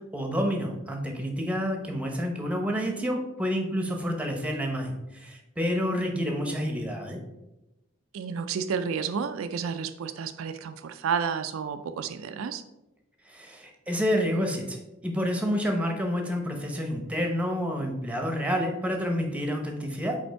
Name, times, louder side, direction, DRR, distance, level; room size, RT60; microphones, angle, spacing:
voice 1, 0.1-7.2 13.3-20.2, equal, 5° right, 3 dB, 0.8 m, -29 dB
voice 2, 8.1-12.6, right 6 dB, 70° right, 8 dB, 0.4 m, -31 dB
5.2 x 4.3 x 4.5 m, 0.95 s
head